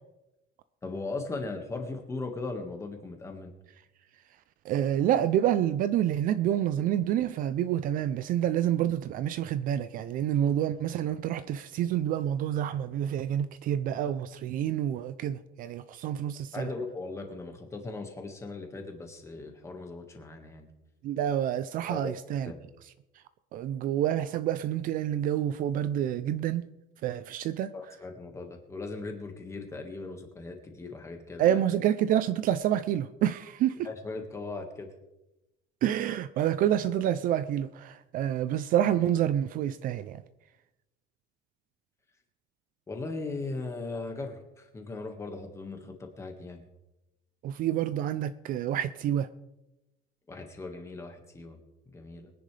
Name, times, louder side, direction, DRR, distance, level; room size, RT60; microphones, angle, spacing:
voice 1, 0.8-3.5 16.5-20.7 21.9-22.2 22.5-22.6 27.7-31.6 33.8-34.9 42.9-46.7 50.3-51.6 51.9-52.3, left 3 dB, 15° left, 1.7 m, -38 dB
voice 2, 4.6-16.7 21.0-22.5 23.5-26.7 27.0-27.7 31.4-33.8 35.8-40.2 47.4-49.3, right 11 dB, 45° right, 0.5 m, -28 dB
23.0 x 10.5 x 3.3 m
cardioid pair, 175°, 19 cm